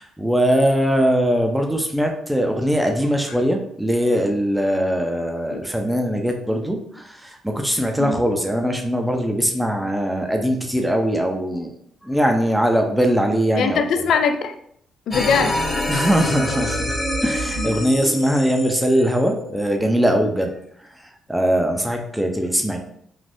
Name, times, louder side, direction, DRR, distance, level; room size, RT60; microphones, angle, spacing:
voice 1, 0.0-11.7 12.0-13.8 15.9-17.0 17.2-20.5 20.8-22.8, equal, 5° right, 0.5 m, -21 dB
voice 2, 13.6-14.6 15.1-15.6 17.6-17.7, left 5 dB, 70° left, 0.3 m, -21 dB
sound 1, 15.1-20.0, left 1 dB, 30° left, 0.7 m, -26 dB
3.3 x 2.5 x 2.6 m
cardioid pair, 90°, 0 cm